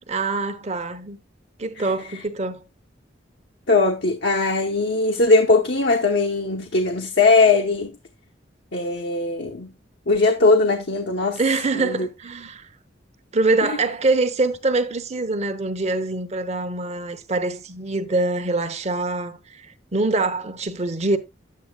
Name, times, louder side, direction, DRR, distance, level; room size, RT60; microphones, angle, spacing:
voice 1, 0.1-1.2 1.6-2.6 11.4-12.7 13.3-21.2, right 3 dB, 35° right, 0.9 m, -24 dB
voice 2, 3.7-7.9 8.7-9.7 10.1-11.4 11.7-12.1 13.6-13.8, left 3 dB, 65° left, 1.1 m, -20 dB
10.5 x 8.5 x 2.3 m
head